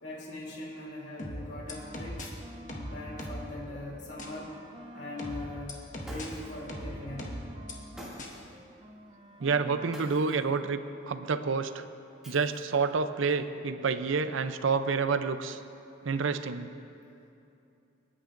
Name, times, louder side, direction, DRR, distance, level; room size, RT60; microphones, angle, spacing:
voice 1, 0.0-2.3 2.7-4.6 4.9-7.3, left 2 dB, 60° left, -4 dB, 3.0 m, -41 dB
sound 1, 1.2-2.3 2.7-3.5 4.2-4.3 5.2-6.3 6.7-7.7 8.2-8.3, equal, 40° left, 1.4 m, -39 dB
sound 2, 1.3-3.6 3.9-8.3 8.5-10.5, right 1 dB, 25° right, 0.7 m, -50 dB
Shatter, 6.0-6.7 8.0-8.5 9.9-10.5 12.2-12.9, equal, 5° right, 2.4 m, -47 dB
voice 2, 9.4-11.8 12.3-15.6 16.0-16.7, right 5 dB, 85° right, 10 dB, 0.6 m, -28 dB
28.0 x 9.9 x 2.6 m, 2.7 s
head